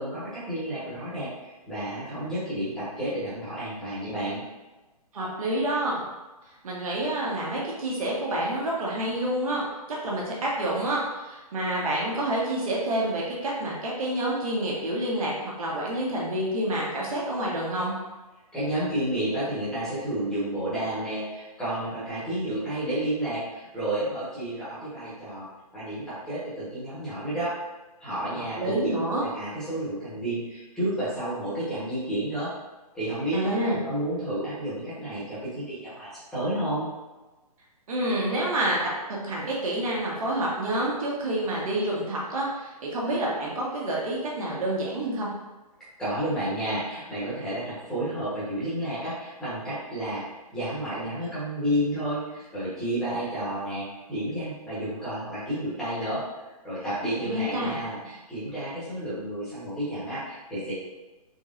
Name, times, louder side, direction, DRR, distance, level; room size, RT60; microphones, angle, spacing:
voice 1, 0.0-4.4 18.5-25.5 25.7-27.5 28.0-28.8 29.2-32.5 32.9-36.9 46.0-56.2 56.6-60.7, right 1 dB, 5° left, -12 dB, 1.0 m, -31 dB
voice 2, 5.1-6.0 6.6-9.6 9.9-17.9 28.6-29.2 33.3-33.8 37.9-38.9 39.2-45.3 57.2-57.7, right 1 dB, 60° right, -4 dB, 1.1 m, -28 dB
3.7 x 3.0 x 2.5 m, 1.2 s
hypercardioid pair, 160°, 20 cm